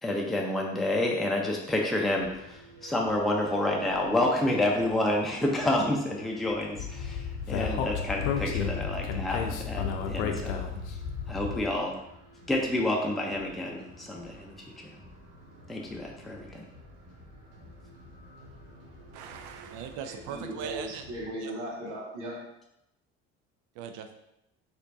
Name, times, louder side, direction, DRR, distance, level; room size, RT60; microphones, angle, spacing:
voice 1, 0.0-10.6 11.3-11.9 12.5-14.6 15.7-16.6, left 1 dB, ahead, -1 dB, 0.6 m, -29 dB
sound 1, 1.9-21.3, right 1 dB, 45° right, 1.1 m, -51 dB
Speech, 6.8-11.7, left 6 dB, 75° left, 0.5 m, -32 dB
voice 2, 19.1-21.0 21.4-21.5 23.8-24.1, right 7 dB, 65° right, 6 dB, 0.5 m, -39 dB
voice 3, 19.9-22.4, right 1 dB, 85° right, -3 dB, 1.0 m, -38 dB
4.3 x 2.6 x 2.7 m, 0.85 s
hypercardioid pair, 65°, 35 cm